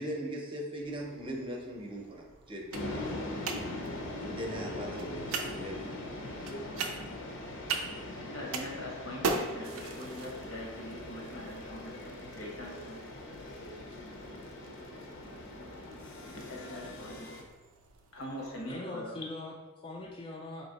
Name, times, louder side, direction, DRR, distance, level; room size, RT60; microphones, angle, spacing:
voice 1, 0.0-3.0 4.2-6.2, equal, 25° right, -1 dB, 0.7 m, -39 dB
sound 1, 0.8-18.7, right 4 dB, 85° right, 0.5 m, -42 dB
sound 2, 2.7-17.4, left 1 dB, 65° left, 0.7 m, -41 dB
voice 2, 7.9-13.0 16.4-17.3 18.1-19.2, left 1 dB, 85° left, 0 dB, 1.0 m, -43 dB
voice 3, 18.7-20.6, left 2 dB, 25° left, -1 dB, 0.4 m, -42 dB
4.1 x 2.8 x 4.0 m, 1.2 s
head